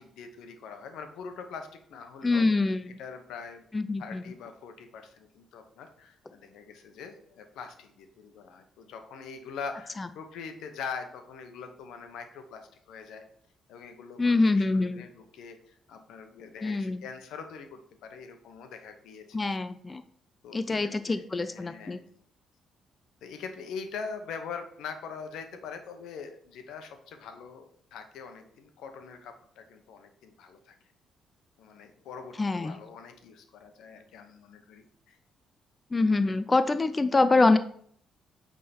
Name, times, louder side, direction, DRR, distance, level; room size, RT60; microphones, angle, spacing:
voice 1, 0.0-3.6 4.0-13.2 13.7-19.6 20.4-22.2 23.2-30.7 31.6-35.2, left 5 dB, 85° left, 6 dB, 1.0 m, -43 dB
voice 2, 2.2-3.0 3.7-4.2 10.0-10.1 14.2-15.1 16.6-17.0 19.3-20.0 20.5-22.0 32.4-32.8 35.9-37.6, left 3 dB, 25° left, 11 dB, 0.4 m, -25 dB
8.4 x 3.7 x 4.3 m, 0.63 s
cardioid pair, 90°, 0 cm